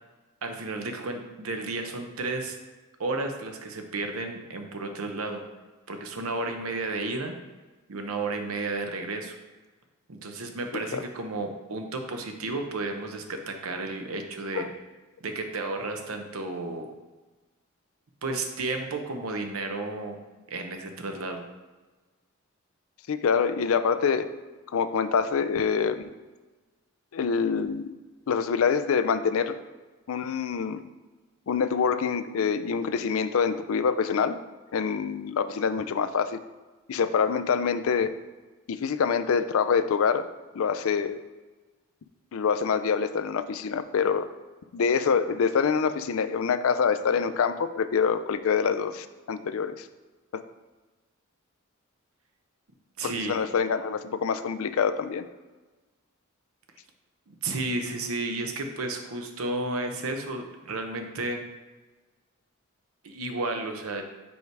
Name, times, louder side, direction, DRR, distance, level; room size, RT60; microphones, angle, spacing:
voice 1, 0.4-2.6 3.0-5.5 5.9-7.3 7.9-9.4 10.1-14.7 15.2-16.9 18.2-20.2 20.5-21.4 53.0-53.4 57.3-61.4 63.0-64.0, right 2 dB, 80° right, 5 dB, 0.8 m, -32 dB
voice 2, 23.1-24.2 24.7-26.1 27.1-27.9 28.3-29.5 30.1-30.8 31.5-34.4 34.7-36.4 36.9-38.1 38.7-40.2 40.5-41.2 42.3-44.2 44.7-49.9 50.3-50.4 53.0-55.3, left 6 dB, 70° left, 11 dB, 0.4 m, -25 dB
5.3 x 4.6 x 4.7 m, 1.3 s
head